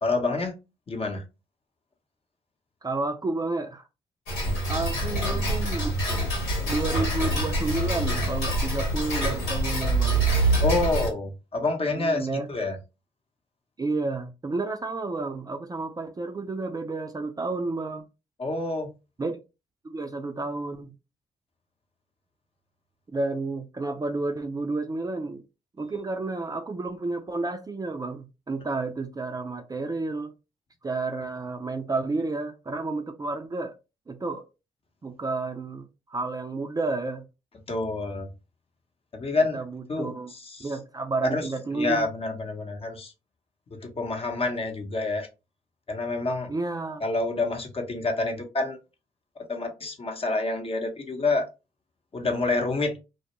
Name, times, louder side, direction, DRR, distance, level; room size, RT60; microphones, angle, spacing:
voice 1, 0.0-0.6 0.9-1.2 10.6-12.8 18.4-18.9 37.7-38.3 39.1-39.6 39.9-40.7 41.2-43.1 43.7-45.3 45.9-46.5 47.0-48.8 49.4-51.5 52.1-53.0, left 3 dB, 40° left, 0.8 m, -28 dB
voice 2, 2.8-3.9 4.7-5.9 6.7-10.2 11.9-12.5 13.8-18.0 19.2-19.4 19.8-20.9 23.1-25.4 25.8-30.3 30.8-33.7 34.1-34.4 35.0-37.2 39.5-40.3 40.6-42.1 46.5-47.0, right 3 dB, 25° right, 0.5 m, -31 dB
Tick-tock, 4.3-11.1, right 1 dB, 90° left, 1.2 m, -25 dB
2.2 x 2.1 x 2.9 m
hypercardioid pair, 50°, 16 cm